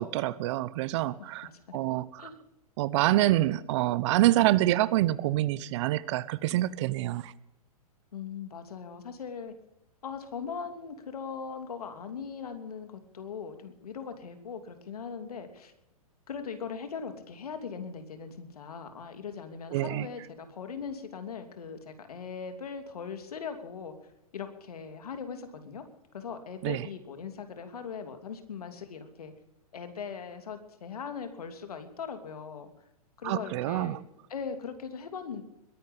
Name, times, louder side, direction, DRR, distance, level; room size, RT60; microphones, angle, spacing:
voice 1, 0.0-2.3 2.8-7.3 19.7-20.1 26.6-26.9 33.2-34.0, right 15 dB, 50° right, 19 dB, 0.9 m, -26 dB
voice 2, 1.2-1.8 2.2-2.4 8.1-9.5 10.0-15.7 16.3-23.9 24.3-25.8 26.1-29.3 29.7-32.7 33.2-34.0 34.3-35.4, left 6 dB, 80° left, 7 dB, 2.9 m, -40 dB
21.5 x 10.5 x 5.4 m, 0.86 s
hypercardioid pair, 120°, 19 cm